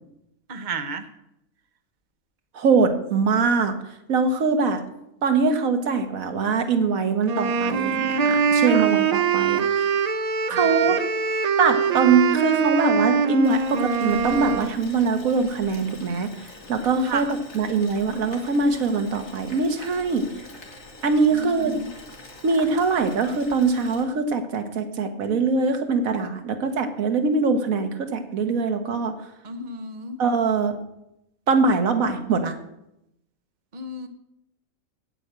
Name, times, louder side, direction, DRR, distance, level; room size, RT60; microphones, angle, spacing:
voice 1, 0.5-1.1 8.6-8.8 10.5-11.0 17.0-17.3 21.3-21.9 29.4-30.2 33.7-34.1, right 3 dB, 35° right, 7 dB, 1.0 m, -33 dB
voice 2, 2.5-3.8 4.1-4.8 5.2-10.0 10.5-11.0 11.6-16.3 16.7-20.3 21.0-21.7 22.4-29.2 30.2-30.8 31.5-32.6, right 4 dB, 85° right, 8 dB, 1.6 m, -22 dB
sound 1, 7.2-14.7, right 6 dB, 60° right, 0.4 m, -23 dB
Boiling, 13.4-24.0, left 2 dB, 55° left, 2.5 m, -44 dB
8.8 x 8.6 x 8.0 m, 0.82 s
omnidirectional pair, 1.4 m